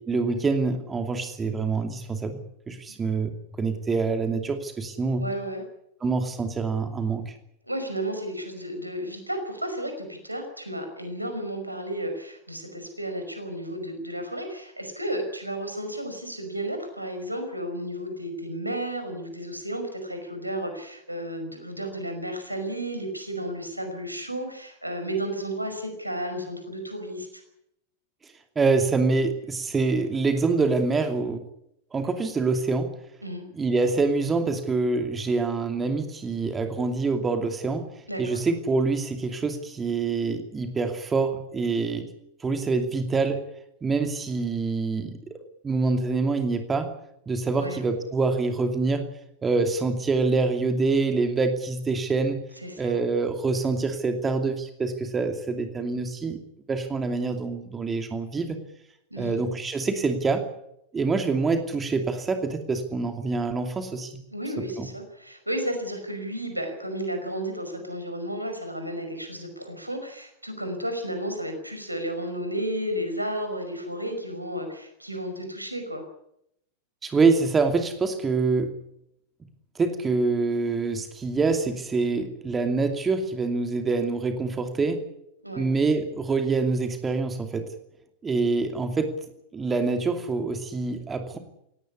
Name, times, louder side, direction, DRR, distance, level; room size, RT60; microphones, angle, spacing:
voice 1, 0.1-3.3 3.6-5.3 6.0-7.3 28.6-31.4 31.9-32.9 33.6-37.9 38.2-42.1 42.4-43.4 43.8-45.4 45.6-46.9 47.3-49.1 49.4-52.4 52.8-56.4 56.7-58.6 59.2-60.4 60.9-64.2 64.8-64.9 77.0-78.7 79.7-85.0 85.6-87.7 88.2-89.1 89.5-91.4, right 4 dB, 15° right, 6 dB, 2.7 m, -25 dB
voice 2, 5.2-5.6 7.6-27.4 33.2-33.4 38.1-38.4 47.6-47.8 52.6-53.0 59.1-59.4 64.3-76.0 85.4-85.7, right 1 dB, 85° right, 6 dB, 5.3 m, -33 dB
19.0 x 17.5 x 9.8 m, 0.78 s
figure-of-eight pair, 90°, 0 cm